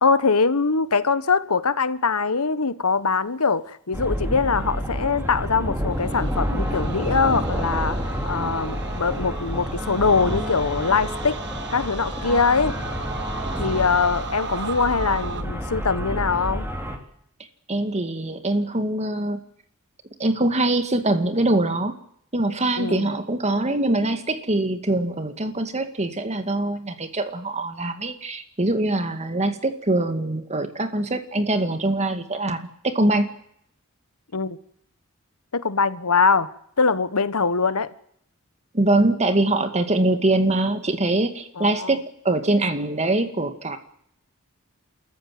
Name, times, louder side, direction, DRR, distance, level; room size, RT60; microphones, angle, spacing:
voice 1, 0.0-8.0 8.2-11.4 11.7-12.7 13.6-16.7 22.8-23.1 34.3-34.6 35.5-36.5 36.8-37.9 41.6-41.9, left 4 dB, 85° left, 1.3 m, -22 dB
sound 1, 3.9-17.0, equal, 10° right, 3.6 m, -29 dB
sound 2, 5.9-15.4, right 4 dB, 55° right, 1.8 m, -37 dB
voice 2, 17.7-19.4 20.2-21.9 22.3-33.3 38.7-42.0 42.2-43.8, right 2 dB, 30° right, 2.2 m, -23 dB
27.5 x 14.5 x 9.4 m
head